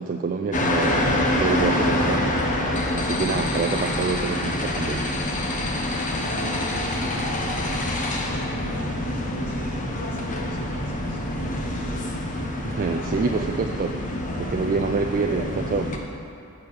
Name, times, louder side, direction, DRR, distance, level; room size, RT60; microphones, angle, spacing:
voice 1, 0.0-2.3 2.9-5.1 12.6-15.9, right 4 dB, 40° right, 3 dB, 0.3 m, -27 dB
sound 1, 0.5-16.0, left 1 dB, 35° left, 0.8 m, -26 dB
voice 2, 6.2-8.0 8.3-12.1, right 1 dB, 85° left, -3 dB, 1.6 m, -37 dB
6.4 x 6.3 x 7.1 m, 2.6 s
head